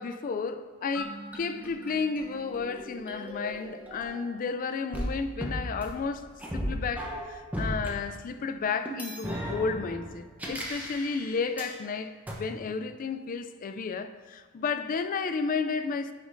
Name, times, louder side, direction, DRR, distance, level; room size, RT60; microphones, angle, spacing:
voice 1, 0.0-6.3 6.5-16.1, left 5 dB, 40° left, 0.3 m, -32 dB
sound 1, 0.9-4.5 4.9-7.9 8.9-11.7 12.3-12.4, equal, 10° right, 0.8 m, -36 dB
9.7 x 5.0 x 2.6 m
head